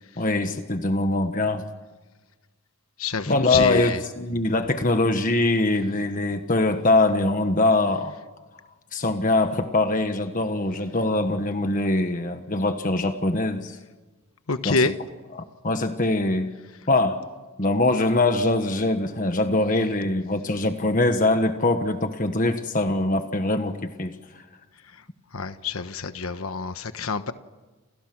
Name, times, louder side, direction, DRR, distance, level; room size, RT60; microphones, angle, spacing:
voice 1, 0.2-1.7 3.3-8.2 8.9-13.8 14.6-14.8 15.3-16.5 16.9-17.3 17.6-24.4, left 2 dB, 40° left, 7 dB, 1.4 m, -23 dB
voice 2, 3.0-4.0 14.5-14.9 25.3-27.3, left 4 dB, 85° left, 10 dB, 1.2 m, -27 dB
30.0 x 28.5 x 6.2 m, 1.2 s
head